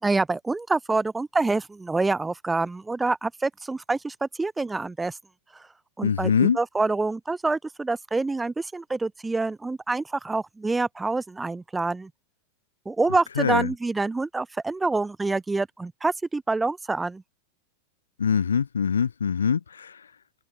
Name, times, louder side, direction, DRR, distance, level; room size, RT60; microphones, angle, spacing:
voice 1, 0.0-5.2 5.5-5.7 6.0-12.1 12.9-17.2, right 3 dB, 10° right, 3.7 m, -26 dB
voice 2, 6.0-6.6 13.4-13.7 18.2-19.9, left 6 dB, 70° left, 0.8 m, -23 dB
open air
figure-of-eight pair, 90°, 0 cm